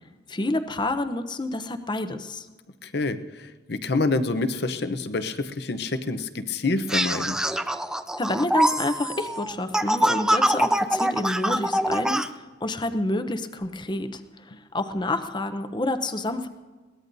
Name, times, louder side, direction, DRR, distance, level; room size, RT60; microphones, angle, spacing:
voice 1, 0.3-2.5 8.2-16.5, left 2 dB, 25° left, 9 dB, 0.8 m, -28 dB
voice 2, 2.8-7.4, left 3 dB, 60° left, 10 dB, 0.8 m, -27 dB
sound 1, 6.9-12.3, right 1 dB, 5° right, 0.4 m, -24 dB
22.0 x 17.5 x 2.7 m, 1.3 s
head